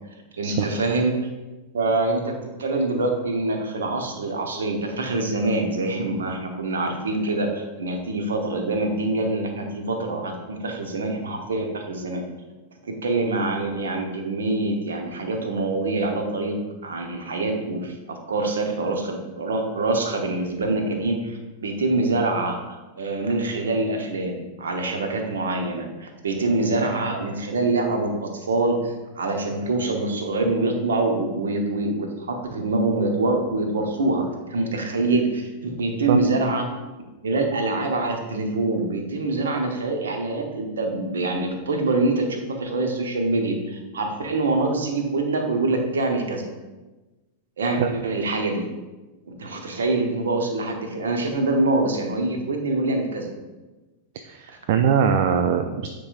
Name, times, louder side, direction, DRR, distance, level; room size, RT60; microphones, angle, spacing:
voice 1, 0.4-1.1 1.7-12.2 12.9-16.6 16.8-36.7 37.2-46.4 47.6-48.7 49.3-53.3, right 2 dB, 65° right, 3 dB, 0.9 m, -25 dB
voice 2, 54.2-55.9, right 7 dB, 50° right, 6 dB, 0.4 m, -21 dB
9.7 x 3.9 x 2.5 m, 1.1 s
figure-of-eight pair, 90°, 0 cm